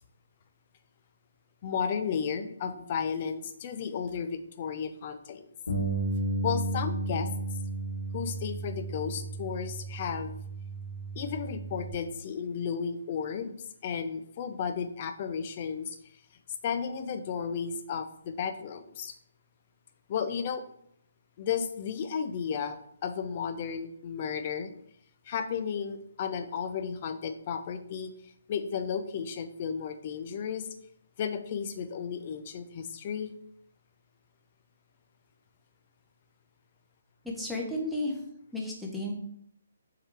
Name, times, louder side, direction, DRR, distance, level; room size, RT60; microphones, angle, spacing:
voice 1, 1.6-5.5 6.4-7.3 8.1-10.4 11.1-13.6 13.8-16.0 16.6-19.1 20.1-20.6 21.4-24.7 25.3-30.7 31.2-33.3, left 7 dB, 40° left, 8 dB, 0.7 m, -33 dB
Bass guitar, 5.7-11.9, right 2 dB, 75° left, 2.0 m, -33 dB
voice 2, 37.2-38.2 38.5-39.1, left 1 dB, ahead, -3 dB, 1.0 m, -33 dB
7.1 x 3.9 x 3.4 m, 0.70 s
figure-of-eight pair, 140°, 0 cm